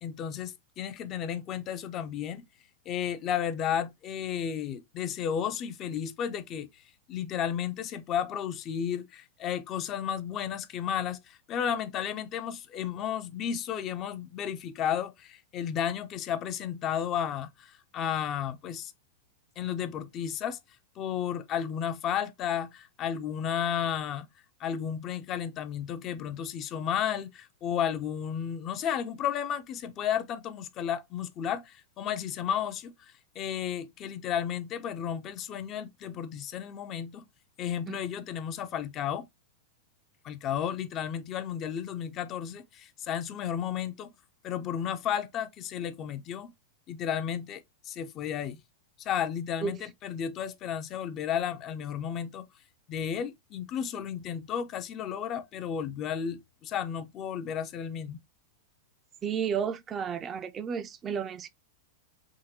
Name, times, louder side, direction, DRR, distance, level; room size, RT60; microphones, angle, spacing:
voice 1, 0.0-2.4 2.9-6.7 7.1-18.9 19.6-20.6 21.0-24.3 24.6-32.9 33.4-37.2 37.6-39.3 40.2-44.1 44.4-46.5 46.9-48.6 49.0-52.5 52.9-58.2, left 9 dB, 35° left, 0.5 m, -33 dB
voice 2, 59.2-61.5, right 7 dB, 25° right, 0.4 m, -32 dB
3.6 x 2.8 x 2.7 m
figure-of-eight pair, 95°, 0 cm